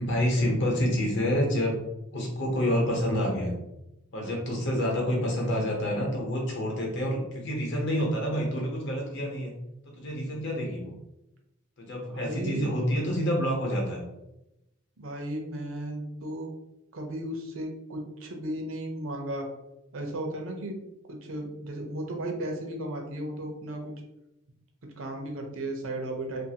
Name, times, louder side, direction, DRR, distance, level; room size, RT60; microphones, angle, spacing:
voice 1, 0.0-1.8 2.1-3.5 4.1-9.5 10.0-10.9 11.8-14.0, equal, 60° left, -1 dB, 0.8 m, -28 dB
voice 2, 12.1-12.7 15.0-16.5 16.9-19.5 19.9-20.8 21.1-23.9 25.0-26.5, right 1 dB, 70° right, 2 dB, 0.6 m, -35 dB
2.5 x 2.4 x 2.8 m, 0.89 s
head